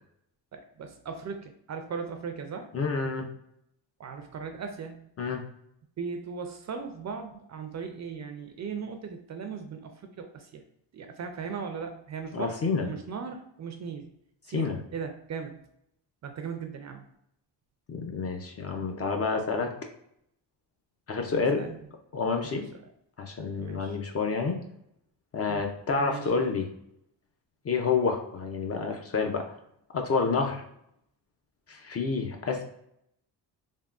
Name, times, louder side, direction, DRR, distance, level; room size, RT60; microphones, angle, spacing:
voice 1, 0.5-2.7 4.0-5.0 6.0-10.6 10.9-14.1 14.5-15.6 16.2-17.0 21.5-21.8 22.4-22.6 23.6-24.0 25.5-25.6 26.0-26.3, right 5 dB, 40° right, 5 dB, 0.4 m, -38 dB
voice 2, 2.7-3.3 5.2-5.4 12.3-12.9 14.5-14.8 17.9-19.7 21.1-21.6 22.1-22.7 23.2-24.6 25.3-26.7 27.6-29.5 29.9-30.6 31.7-32.6, left 4 dB, 35° left, 3 dB, 0.4 m, -28 dB
3.5 x 2.2 x 2.4 m, 0.75 s
cardioid pair, 110°, 43 cm